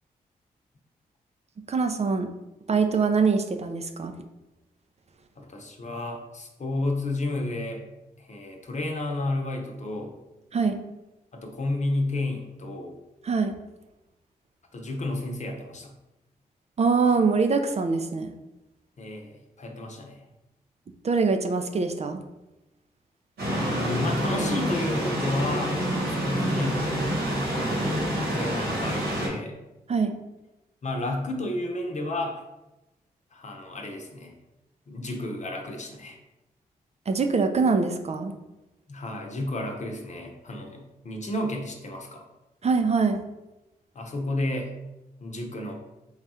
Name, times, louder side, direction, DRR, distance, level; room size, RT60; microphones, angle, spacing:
voice 1, 1.7-2.3 2.7-4.1 10.5-10.8 13.2-13.5 16.8-18.3 21.0-22.2 29.9-30.1 37.1-38.3 42.6-43.2, right 4 dB, 40° right, 6 dB, 0.5 m, -23 dB
voice 2, 5.4-7.8 8.2-10.1 11.3-12.9 14.7-15.9 19.0-20.2 23.5-25.8 26.1-27.2 27.5-29.6 30.8-32.4 33.3-34.3 34.9-36.2 38.9-42.2 43.9-44.7 45.2-45.7, left 2 dB, 45° left, 2 dB, 0.9 m, -32 dB
sound 1, 23.4-29.3, equal, 85° right, 1.4 m, -27 dB
3.5 x 2.4 x 4.2 m, 0.98 s
supercardioid pair, 45°, 16 cm